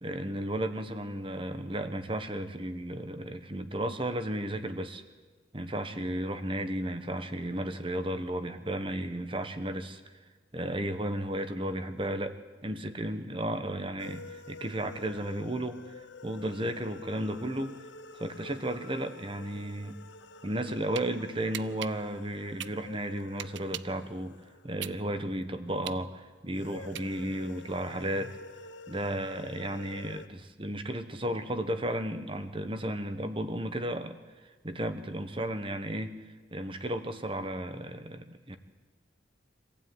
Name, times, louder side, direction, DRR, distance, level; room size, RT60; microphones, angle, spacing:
voice 1, 0.0-5.0 5.5-10.0 10.5-15.8 16.2-17.8 18.1-20.0 20.4-24.4 24.6-28.4 28.9-34.2 34.6-36.1 36.5-38.6, right 1 dB, 30° right, 9 dB, 1.4 m, -34 dB
sound 1, 14.0-25.7 26.5-30.3, left 3 dB, 85° left, 1.0 m, -49 dB
sound 2, 21.0-21.1 21.5-24.0 24.4-27.5, right 11 dB, 80° right, 0.7 m, -41 dB
25.5 x 15.5 x 9.6 m, 1.3 s
head